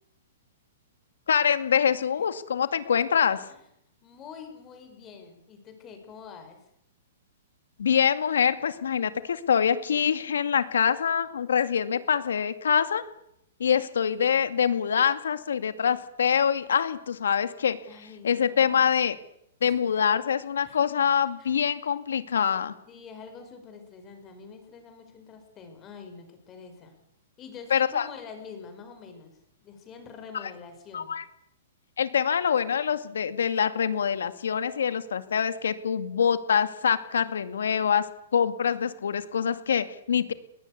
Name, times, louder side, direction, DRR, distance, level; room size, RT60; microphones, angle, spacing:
voice 1, 1.3-3.4 7.8-13.0 13.6-17.8 18.2-19.2 19.6-22.7 27.7-28.1 30.9-31.2 32.0-38.0 38.3-40.3, left 7 dB, 90° left, 11 dB, 2.3 m, -25 dB
voice 2, 4.0-6.7 17.9-18.9 19.6-19.8 20.6-20.8 21.4-21.5 22.9-26.9 27.4-31.2, left 5 dB, 20° left, 6 dB, 4.9 m, -46 dB
21.5 x 19.5 x 8.4 m, 0.76 s
hypercardioid pair, 155°, 0 cm